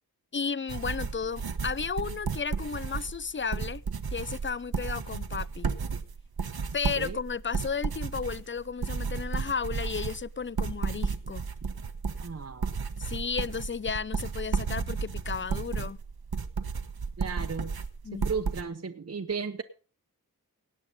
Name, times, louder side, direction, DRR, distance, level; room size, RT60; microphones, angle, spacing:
voice 1, 0.3-3.8 4.1-5.7 6.7-11.4 13.0-16.0 18.0-18.3, left 5 dB, 30° left, 0.6 m, -33 dB
sound 1, 0.7-18.6, right 5 dB, 80° right, 1.2 m, -33 dB
voice 2, 12.2-12.8 17.2-17.7 18.1-19.6, right 5 dB, 40° right, 1.0 m, -35 dB
18.0 x 8.9 x 5.3 m
wide cardioid pair, 85°, 37 cm